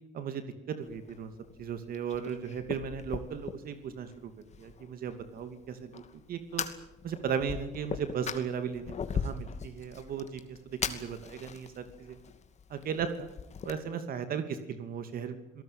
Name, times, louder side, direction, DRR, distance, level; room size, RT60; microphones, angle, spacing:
voice 1, 0.1-1.3 1.6-4.3 4.6-6.0 6.3-6.6 7.0-12.2 12.7-13.1 13.6-15.6, right 7 dB, 60° right, 9 dB, 2.7 m, -36 dB
Fire, 0.8-13.7, left 6 dB, 40° left, 2.5 m, -40 dB
27.5 x 18.5 x 9.1 m, 0.85 s
cardioid pair, 110°, 17 cm